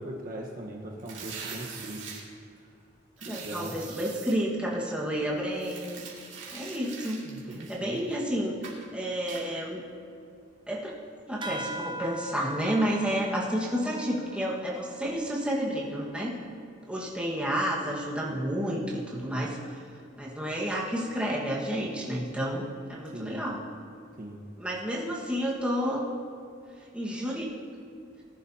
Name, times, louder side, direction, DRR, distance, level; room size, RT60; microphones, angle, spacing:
voice 1, 0.0-2.0 3.2-3.7 7.2-8.0 23.1-23.4 24.2-24.4, right 1 dB, 45° right, -1 dB, 1.3 m, -39 dB
sound 1, 1.0-2.2 3.2-4.3 5.5-8.2 8.6-8.9 9.3-9.4, right 6 dB, 70° right, 2.6 m, -42 dB
voice 2, 3.3-6.1 6.5-7.2 7.7-8.5 8.9-9.8 10.7-10.9 11.3-16.3 16.9-19.8 20.2-23.6 24.6-26.1 26.9-27.5, equal, 5° right, -4 dB, 1.6 m, -30 dB
sound 2, 11.4-16.4, right 1 dB, 25° right, 0.8 m, -42 dB
19.5 x 10.5 x 2.9 m, 2.4 s
head